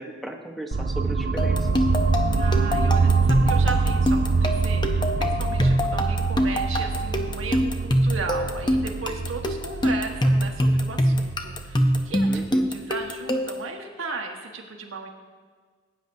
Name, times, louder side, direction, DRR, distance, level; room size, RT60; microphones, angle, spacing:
voice 1, 0.0-1.9 12.3-12.7, right 1 dB, ahead, 1 dB, 1.0 m, -36 dB
sound 1, 0.7-12.6, right 4 dB, 45° right, 0.4 m, -25 dB
sound 2, 1.4-13.7, equal, 20° left, 0.7 m, -24 dB
voice 2, 2.2-15.1, right 3 dB, 85° right, 2 dB, 1.4 m, -36 dB
18.0 x 9.2 x 2.7 m, 1.5 s
head